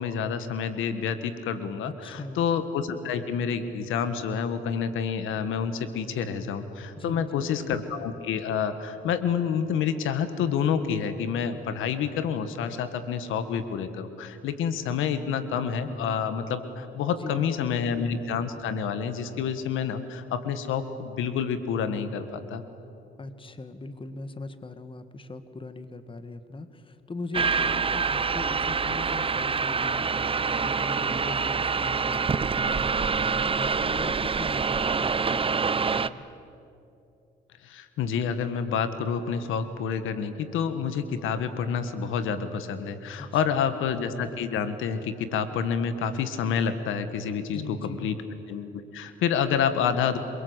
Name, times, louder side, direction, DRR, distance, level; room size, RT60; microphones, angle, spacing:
voice 1, 0.0-22.6 37.6-48.2 48.5-50.2, left 7 dB, 85° left, 10 dB, 1.7 m, -28 dB
voice 2, 1.8-2.4 7.0-7.5 17.1-17.7 23.2-36.2 43.2-43.7 47.5-48.1, left 3 dB, 25° left, 11 dB, 1.6 m, -40 dB
sound 1, 27.3-36.1, right 5 dB, 25° right, 0.7 m, -26 dB
28.5 x 22.5 x 8.2 m, 2.7 s
cardioid pair, 90°, 20 cm